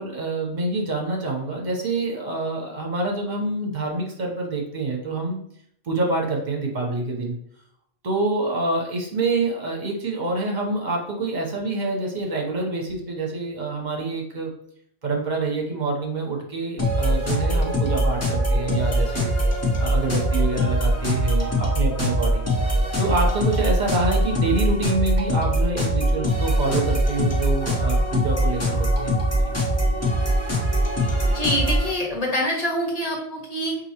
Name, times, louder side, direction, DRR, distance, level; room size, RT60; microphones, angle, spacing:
voice 1, 0.0-5.4 5.8-7.4 8.0-14.5 15.0-19.3 19.8-22.5 23.0-29.5, right 2 dB, 45° right, 1 dB, 1.0 m, -26 dB
sound 1, 16.8-31.9, equal, 15° left, 0.7 m, -22 dB
voice 2, 31.2-33.8, equal, 35° left, -2 dB, 1.2 m, -25 dB
5.3 x 2.7 x 2.9 m, 0.70 s
omnidirectional pair, 1.1 m